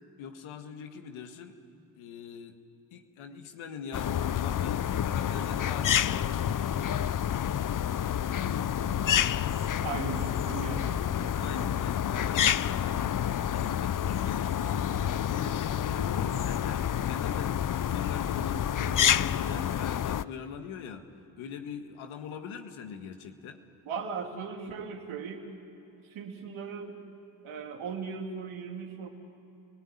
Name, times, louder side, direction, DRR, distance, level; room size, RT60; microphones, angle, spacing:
voice 1, 0.2-1.5 2.0-2.6 2.9-6.8 11.4-21.1 21.4-23.6, left 6 dB, 85° left, 6 dB, 1.7 m, -42 dB
sound 1, 3.9-20.2, left 10 dB, 45° left, 0.6 m, -28 dB
voice 2, 8.4-9.2 9.8-11.7 23.9-25.4 26.1-27.0 27.4-29.1, right 5 dB, 85° right, 2 dB, 2.6 m, -38 dB
28.5 x 18.5 x 10.0 m, 2.9 s
supercardioid pair, 40°, 47 cm